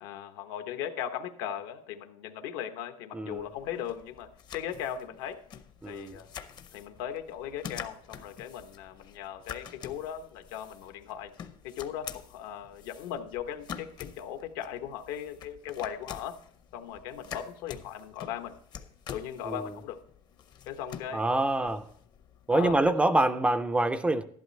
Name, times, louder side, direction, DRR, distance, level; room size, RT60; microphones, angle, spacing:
voice 1, 0.0-5.4 5.9-6.3 6.7-11.3 11.6-16.4 16.7-18.5 19.1-20.0 20.7-21.3 21.6-21.8 22.5-22.9, left 9 dB, 80° left, 1.1 m, -38 dB
voice 2, 3.1-3.5 5.8-6.2 19.4-19.6 21.1-21.8 22.5-24.2, right 2 dB, 10° right, 0.3 m, -26 dB
sound 1, 3.3-22.9, left 8 dB, 35° left, 0.6 m, -47 dB
12.0 x 11.0 x 3.2 m
cardioid pair, 170°, 13 cm